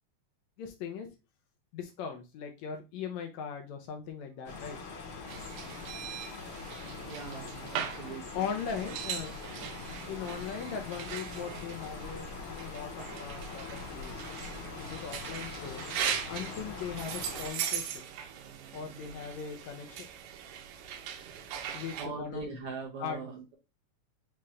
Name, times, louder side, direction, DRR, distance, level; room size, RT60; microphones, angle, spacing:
voice 1, 0.6-1.1 1.7-4.8 8.1-9.3 10.1-14.2 14.6-15.9 16.3-17.9 18.7-20.1 21.7-22.5 23.0-23.2, left 7 dB, 75° left, 4 dB, 1.8 m, -39 dB
sound 1, 4.5-17.5, left 4 dB, 60° left, 1.6 m, -43 dB
sound 2, 5.3-22.1, right 8 dB, 90° right, 2.3 m, -40 dB
voice 2, 7.0-8.5 22.0-23.5, right 4 dB, 70° right, -2 dB, 1.4 m, -41 dB
5.7 x 2.5 x 3.1 m, 0.26 s
omnidirectional pair, 3.6 m